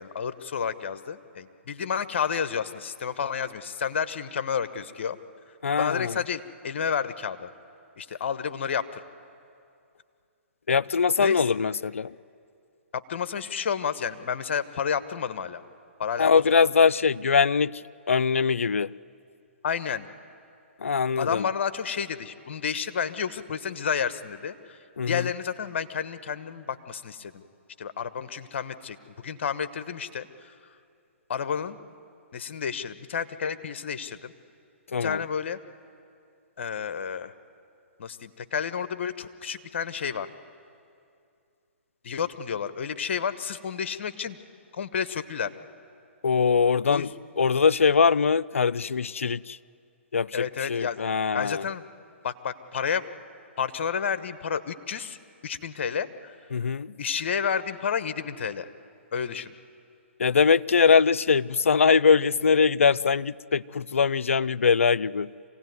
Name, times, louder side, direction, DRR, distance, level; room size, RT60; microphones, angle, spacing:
voice 1, 0.0-5.2 5.8-7.5 8.0-9.0 11.2-11.4 12.9-15.6 16.0-16.4 19.6-20.1 21.2-24.8 25.1-27.4 27.8-29.0 29.2-30.5 31.3-31.8 32.3-34.3 35.0-35.6 36.6-37.3 38.0-40.3 42.0-44.4 44.7-45.5 46.9-47.1 50.3-51.0 51.3-51.8 52.2-53.0 53.6-55.2 55.4-56.3 57.0-58.7 59.1-59.5, left 7 dB, 60° left, 12 dB, 1.2 m, -30 dB
voice 2, 5.6-6.2 10.7-12.1 16.2-17.8 18.1-18.9 20.8-21.5 25.0-25.3 34.9-35.2 46.2-47.1 47.4-49.6 50.1-51.6 56.5-56.9 60.2-65.3, left 5 dB, 85° left, 18 dB, 0.5 m, -22 dB
26.0 x 17.5 x 9.5 m, 2.4 s
hypercardioid pair, 135°, 7 cm